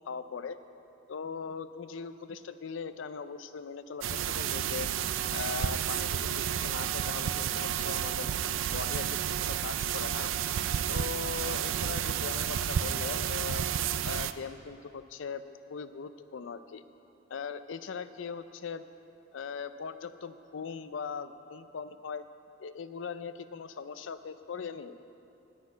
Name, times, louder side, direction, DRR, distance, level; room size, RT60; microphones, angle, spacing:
voice 1, 0.1-0.6 1.1-4.9 5.3-8.3 8.7-9.2 9.5-10.3 10.9-13.6 14.0-16.8 17.3-18.8 19.3-22.2 22.6-24.9, left 6 dB, 70° left, 12 dB, 0.4 m, -40 dB
sound 1, 4.0-14.3, right 9 dB, 80° right, 0.4 m, -31 dB
10.0 x 6.3 x 8.3 m, 2.8 s
head